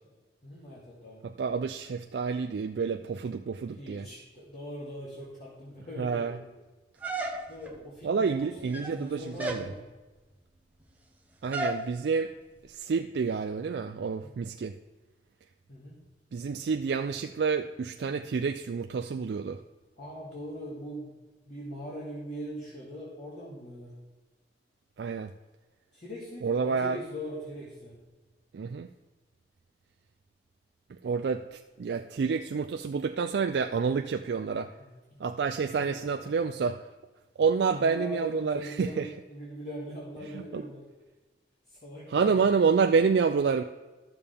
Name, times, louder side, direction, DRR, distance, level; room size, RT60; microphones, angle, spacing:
voice 1, 0.4-1.2 3.8-6.5 7.5-9.8 14.2-14.3 15.7-16.0 20.0-21.1 21.4-23.9 25.9-27.9 34.8-34.9 35.6-35.9 37.7-40.8 41.7-42.4, equal, 45° left, -6 dB, 2.2 m, -41 dB
voice 2, 1.2-4.1 6.0-6.4 8.0-9.7 11.4-12.3 12.6-14.8 16.3-19.6 25.0-25.3 26.4-27.0 28.5-28.9 31.0-34.7 35.2-36.8 37.4-39.1 40.2-40.6 42.1-43.6, right 5 dB, 75° right, 6 dB, 0.4 m, -28 dB
sound 1, 7.0-7.8 8.6-9.0 9.4-9.7 11.5-11.9, right 1 dB, 10° right, 0.8 m, -33 dB
12.5 x 6.9 x 3.4 m, 1.2 s
head